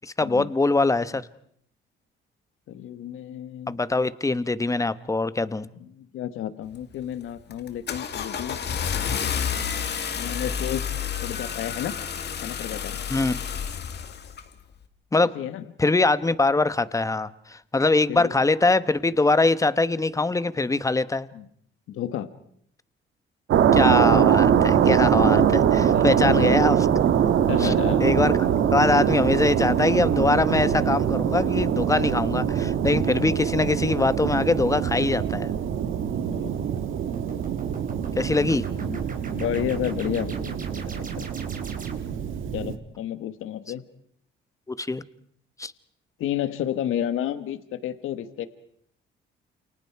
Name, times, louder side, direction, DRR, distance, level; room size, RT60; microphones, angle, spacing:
voice 1, 0.0-1.3 3.7-5.7 13.1-13.4 15.1-15.3 15.8-21.3 23.7-26.9 27.6-27.7 28.0-35.5 38.1-38.6 44.7-45.0 45.6-45.7, left 3 dB, 15° left, 15 dB, 1.1 m, -23 dB
voice 2, 2.7-3.7 5.9-8.6 10.1-10.9 11.2-11.9 12.4-13.0 15.2-15.6 18.1-18.3 21.3-21.4 21.9-22.3 25.2-25.5 25.9-26.7 27.5-28.1 33.0-33.3 36.2-36.7 37.7-37.8 38.7-39.0 39.3-41.3 42.5-43.8 46.2-48.5, left 11 dB, 85° left, 12 dB, 1.4 m, -31 dB
Car / Engine starting, 6.7-7.0 7.5-14.5, left 7 dB, 55° left, 2.2 m, -30 dB
sound 1, 23.5-42.8, right 9 dB, 75° right, 1.7 m, -23 dB
sound 2, 37.1-42.3, right 4 dB, 40° right, 3.9 m, -40 dB
29.0 x 29.0 x 4.7 m, 0.66 s
cardioid pair, 100°, 21 cm